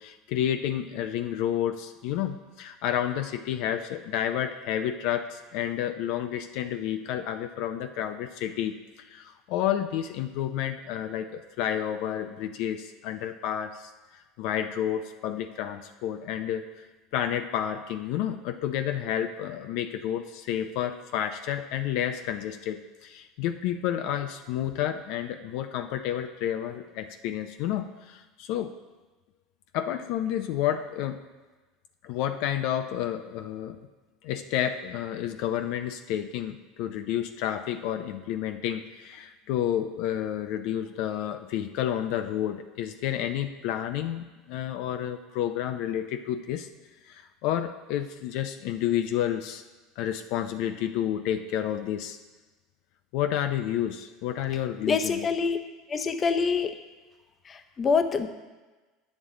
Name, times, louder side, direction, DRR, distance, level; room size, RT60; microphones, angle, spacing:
voice 1, 0.0-8.8 9.1-13.9 14.4-16.6 17.1-28.7 29.7-31.2 32.0-33.8 34.2-46.7 47.0-49.6 50.0-52.2 53.1-55.3, left 10 dB, 65° left, 7 dB, 0.5 m, -30 dB
voice 2, 54.8-55.6 55.9-56.8 57.5-58.3, left 5 dB, 30° left, 8 dB, 0.6 m, -25 dB
9.6 x 7.3 x 3.8 m, 1.2 s
supercardioid pair, 115°, 0 cm